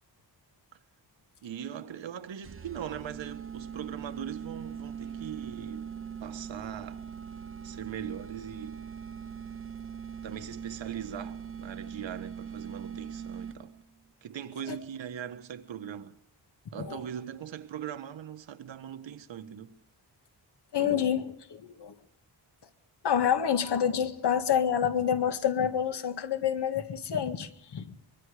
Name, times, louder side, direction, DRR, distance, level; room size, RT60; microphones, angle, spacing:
voice 1, 1.4-5.9 6.2-7.0 7.6-8.8 10.2-13.7 14.2-16.1 16.7-19.8 20.8-21.0, right 9 dB, 85° right, 1.7 m, -40 dB
sound 1, 2.4-13.9, right 7 dB, 30° right, 1.0 m, -41 dB
voice 2, 20.7-21.9 23.0-28.0, left 8 dB, 65° left, 1.9 m, -28 dB
24.5 x 23.5 x 5.1 m
wide cardioid pair, 160°, 44 cm